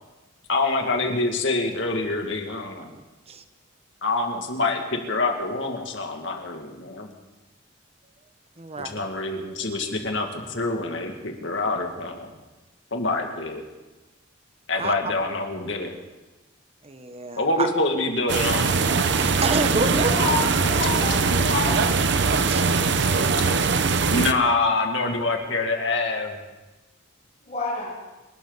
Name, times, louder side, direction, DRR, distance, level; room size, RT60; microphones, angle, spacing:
voice 1, 0.5-2.9 4.0-7.1 8.8-12.3 12.9-13.6 14.7-15.9 17.4-18.8 24.1-26.4, left 3 dB, 70° left, 3 dB, 2.2 m, -26 dB
voice 2, 2.9-3.4 8.6-9.0 14.7-15.1 16.8-17.7 19.1-20.1 22.4-22.8, right 3 dB, 30° right, 9 dB, 1.0 m, -29 dB
sound 1, 18.3-24.3, right 4 dB, 60° right, 0.8 m, -21 dB
voice 3, 19.8-21.8 27.4-28.0, left 3 dB, 35° left, -11 dB, 7.3 m, -28 dB
27.0 x 12.5 x 4.0 m, 1.1 s
head